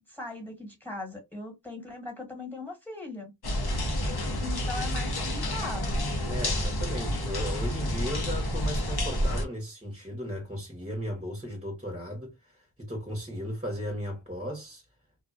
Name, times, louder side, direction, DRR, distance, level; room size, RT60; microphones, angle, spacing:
voice 1, 0.1-3.3 4.4-6.0, left 2 dB, 5° left, 1.3 m, -39 dB
sound 1, 3.4-9.5, left 1 dB, 60° left, 0.8 m, -29 dB
voice 2, 6.3-14.8, equal, 15° right, 0.9 m, -36 dB
2.4 x 2.2 x 2.4 m
wide cardioid pair, 60°, 44 cm